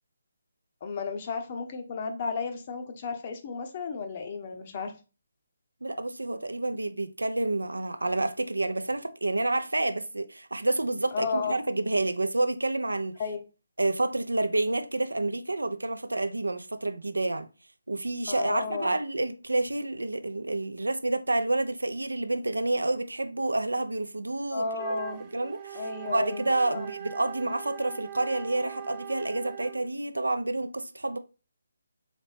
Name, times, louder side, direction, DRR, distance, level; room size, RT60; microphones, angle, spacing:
voice 1, 0.8-4.9 11.1-11.6 13.2-13.4 18.3-18.9 24.5-25.2 25.7-26.4, left 4 dB, 35° left, 0.7 m, -33 dB
voice 2, 5.8-13.2 13.8-17.5 17.9-24.7 25.3-31.2, right 2 dB, 80° right, 0.5 m, -29 dB
Wind instrument woodwind instrument, 24.7-29.9, right 8 dB, 25° right, 0.5 m, -41 dB
4.1 x 3.0 x 3.2 m
figure-of-eight pair, 150°, 0 cm